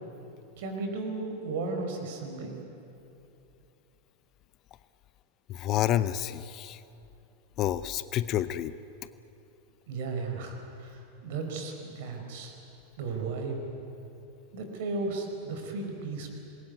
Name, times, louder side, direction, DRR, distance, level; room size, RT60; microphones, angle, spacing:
voice 1, 0.6-2.6 9.9-12.5 13.0-13.6 14.5-16.3, right 3 dB, 50° right, 4 dB, 4.9 m, -35 dB
voice 2, 5.5-6.8 7.6-8.7, left 12 dB, 35° left, 15 dB, 0.7 m, -29 dB
26.0 x 21.5 x 9.5 m, 2.7 s
figure-of-eight pair, 90°, 0 cm